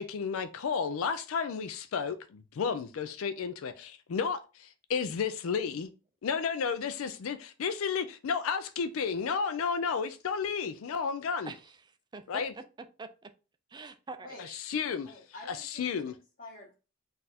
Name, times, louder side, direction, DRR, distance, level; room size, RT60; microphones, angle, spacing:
voice 1, 0.0-5.9 6.2-11.5 12.3-12.5 14.4-15.1 15.5-16.1, left 6 dB, 80° left, 0.4 m, -32 dB
voice 2, 11.5-12.6 13.0-13.3 13.7-14.6, right 3 dB, 20° right, 0.4 m, -45 dB
voice 3, 15.0-16.7, left 2 dB, 45° left, 1.7 m, -49 dB
4.1 x 2.5 x 4.1 m
head